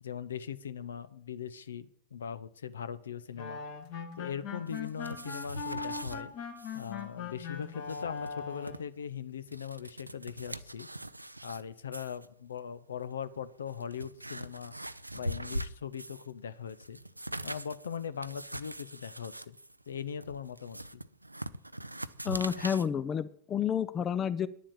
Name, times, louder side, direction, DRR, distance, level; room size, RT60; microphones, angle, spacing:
voice 1, 0.0-3.6 4.2-6.3 6.7-10.9 11.4-14.7 15.1-17.0 17.4-19.6 19.9-21.0, left 7 dB, 70° left, 15 dB, 0.7 m, -40 dB
sound 1, 3.3-8.9, left 5 dB, 50° left, 2.1 m, -40 dB
sound 2, 4.7-6.2 6.6-6.9 7.2-7.3 7.7-8.8 9.3-11.6 11.9-12.3 13.0-13.1 13.6-16.3 16.7-22.9, right 1 dB, 85° right, 0.4 m, -42 dB
voice 2, 22.2-24.5, left 8 dB, 25° left, 16 dB, 0.5 m, -30 dB
10.0 x 7.4 x 8.8 m, 0.65 s
figure-of-eight pair, 90°, 0 cm